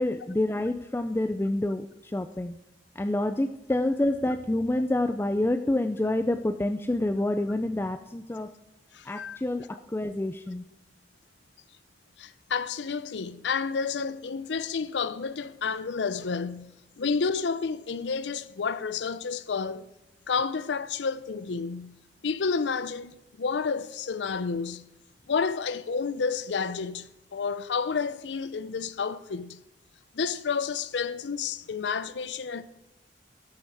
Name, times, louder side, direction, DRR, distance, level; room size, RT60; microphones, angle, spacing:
voice 1, 0.0-2.6 3.0-8.5 9.1-10.6, left 1 dB, 15° left, 0.3 m, -28 dB
voice 2, 8.9-9.4 12.2-19.9 20.3-22.0 22.2-24.9 25.3-29.6 30.1-32.6, left 5 dB, 85° left, 0.5 m, -30 dB
13.0 x 7.8 x 4.7 m
head